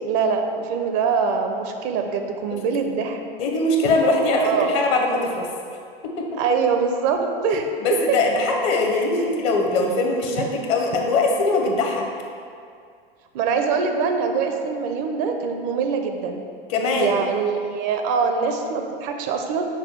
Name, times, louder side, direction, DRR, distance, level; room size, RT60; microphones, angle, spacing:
voice 1, 0.0-3.2 3.8-3.9 4.4-4.7 6.4-7.7 10.3-10.5 13.3-16.4 17.0-19.6, right 5 dB, 45° right, 5 dB, 0.5 m, -23 dB
voice 2, 3.4-5.5 6.2-6.4 7.8-12.1 16.7-17.2, left 2 dB, 45° left, 1 dB, 0.7 m, -21 dB
5.6 x 2.2 x 4.2 m, 2.3 s
hypercardioid pair, 90°, 29 cm